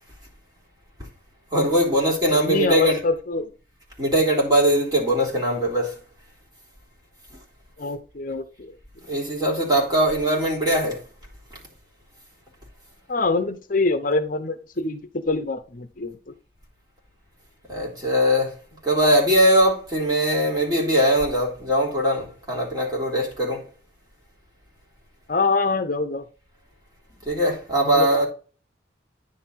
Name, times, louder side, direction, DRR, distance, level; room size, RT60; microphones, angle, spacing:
voice 1, 1.5-3.0 4.0-6.0 7.3-7.4 9.1-11.0 17.7-18.6 18.8-23.7 27.2-28.3, equal, 20° right, 3.3 m, -21 dB
voice 2, 2.2-3.5 7.8-8.7 13.1-16.2 25.3-26.2 27.9-28.2, left 3 dB, 50° left, 0.7 m, -25 dB
10.0 x 4.2 x 4.1 m
head